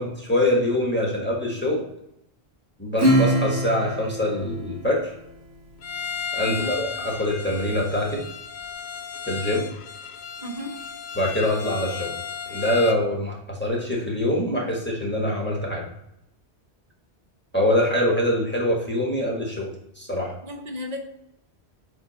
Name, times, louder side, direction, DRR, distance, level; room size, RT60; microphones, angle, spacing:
voice 1, 0.0-1.8 2.8-5.1 6.3-8.2 9.3-9.6 11.1-12.1 12.5-15.8 17.5-20.3, left 1 dB, 10° left, -3 dB, 1.4 m, -24 dB
Acoustic guitar / Strum, 3.0-5.9, right 1 dB, 70° right, 1.4 m, -24 dB
Bowed string instrument, 5.8-13.1, left 6 dB, 60° left, 0.5 m, -34 dB
voice 2, 6.4-6.8 10.4-10.8 20.4-21.0, equal, 40° right, 3 dB, 1.0 m, -34 dB
7.9 x 3.2 x 4.0 m, 0.79 s
omnidirectional pair, 1.1 m